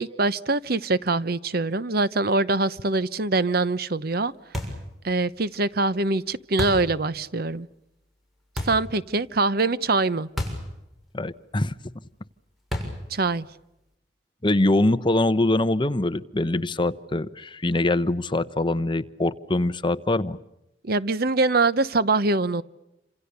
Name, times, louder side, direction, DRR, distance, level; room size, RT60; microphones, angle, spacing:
voice 1, 0.0-4.3 5.0-7.7 8.6-10.3 13.1-13.4 20.8-22.6, right 3 dB, 55° right, 0.9 m, -23 dB
sound 1, 4.5-4.9 6.6-6.9 8.6-8.9 10.4-10.7 11.0-11.1 12.7-13.1, left 1 dB, ahead, 6.8 m, -30 dB
voice 2, 11.1-11.7 14.4-20.4, left 2 dB, 25° left, 0.9 m, -23 dB
29.0 x 27.0 x 6.8 m
head